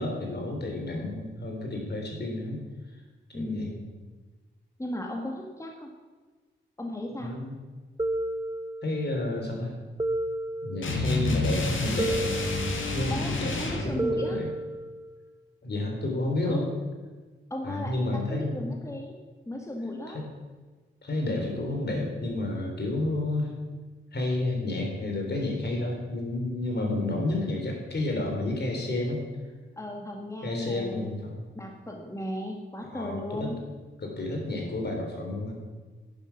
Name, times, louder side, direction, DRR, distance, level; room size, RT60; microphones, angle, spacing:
voice 1, 0.0-2.6 3.3-3.8 7.2-7.5 8.8-9.7 10.6-12.2 12.9-14.5 15.6-16.7 17.6-18.7 20.1-20.3 21.0-23.5 24.1-29.2 30.4-31.4 32.8-33.5 34.0-35.6, left 2 dB, 55° left, 1 dB, 3.7 m, -30 dB
voice 2, 3.3-3.9 4.8-5.9 6.8-7.4 13.1-14.5 16.5-16.7 17.5-19.1 19.5-20.3 29.8-31.1 31.6-33.6, left 1 dB, 15° left, 2 dB, 1.7 m, -36 dB
sound 1, 8.0-9.2 10.0-11.2 12.0-13.2 14.0-15.2, right 1 dB, 20° right, 0.8 m, -32 dB
sound 2, 10.8-13.9, left 2 dB, 75° left, 2.0 m, -29 dB
11.0 x 10.0 x 5.9 m, 1.3 s
cardioid pair, 60°, 20 cm